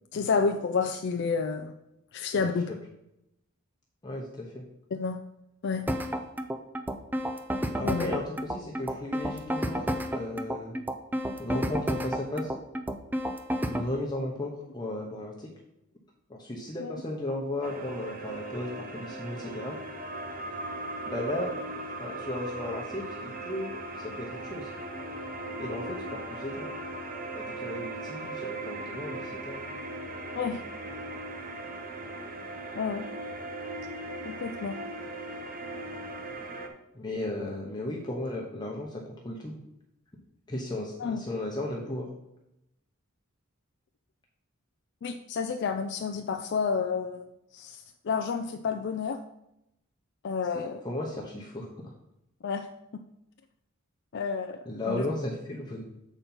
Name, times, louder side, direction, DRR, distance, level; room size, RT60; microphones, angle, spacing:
voice 1, 0.1-1.7 2.1-2.7 4.9-5.2 5.6-5.9 7.8-8.2 16.8-17.0 30.3-30.6 32.7-33.0 34.2-34.8 41.0-41.2 45.0-49.2 50.2-50.8 52.4-53.0 54.1-55.0, left 5 dB, 55° left, 6 dB, 0.4 m, -30 dB
voice 2, 4.0-4.6 7.7-10.7 11.4-12.5 13.6-15.5 16.3-19.8 21.0-21.7 22.0-23.7 24.0-24.7 25.6-26.7 27.3-29.6 36.9-39.6 40.5-42.1 50.5-51.9 54.7-55.8, left 1 dB, 20° left, -2 dB, 0.8 m, -35 dB
sound 1, 5.9-13.9, equal, 10° right, 0.4 m, -31 dB
sound 2, 17.6-36.7, right 2 dB, 40° right, 0.8 m, -38 dB
6.9 x 4.4 x 5.4 m, 0.84 s
head